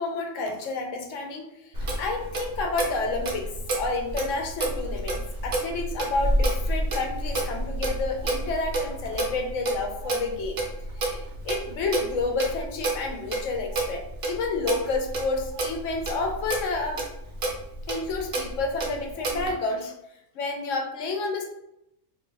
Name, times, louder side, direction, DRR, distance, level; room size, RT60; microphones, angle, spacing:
voice 1, 0.0-10.6 11.0-17.0 17.9-19.9 20.3-21.5, left 3 dB, 75° left, 3 dB, 1.0 m, -30 dB
Clock, 1.7-19.5, right 1 dB, 60° right, 0.9 m, -30 dB
2.7 x 2.3 x 3.9 m, 0.80 s
omnidirectional pair, 1.3 m